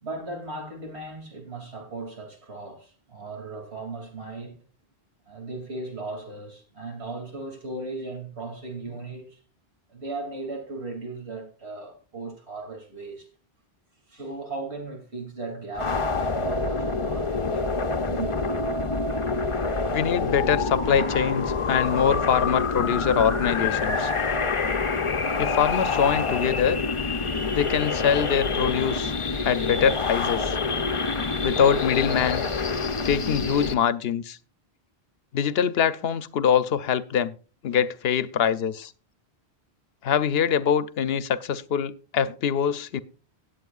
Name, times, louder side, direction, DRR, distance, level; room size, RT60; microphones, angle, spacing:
voice 1, 0.0-4.5 5.3-9.4 9.9-13.3 14.1-17.6 18.0-18.3, right 3 dB, 85° right, 3.0 m, -37 dB
sound 1, 15.7-33.7, left 4 dB, 35° left, 0.7 m, -26 dB
voice 2, 19.9-24.1 25.4-26.8 27.5-29.1 29.4-30.6 31.4-32.5 33.0-34.4 35.3-37.3 37.6-38.9 40.0-43.0, left 8 dB, 70° left, 0.9 m, -24 dB
17.5 x 8.3 x 2.4 m
omnidirectional pair, 1.1 m